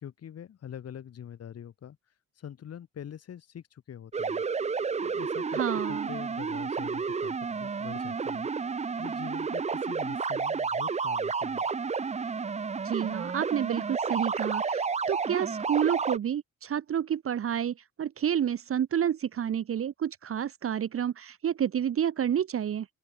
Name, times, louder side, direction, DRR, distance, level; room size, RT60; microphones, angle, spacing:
voice 1, 0.0-2.0 2.4-4.4 5.0-8.5 9.0-11.6, left 9 dB, 55° left, 1.9 m, -44 dB
sound 1, 4.1-16.2, right 5 dB, 20° right, 0.7 m, -31 dB
voice 2, 5.5-6.1 12.8-22.9, right 9 dB, 50° right, 1.0 m, -29 dB
open air
cardioid pair, 90°, 30 cm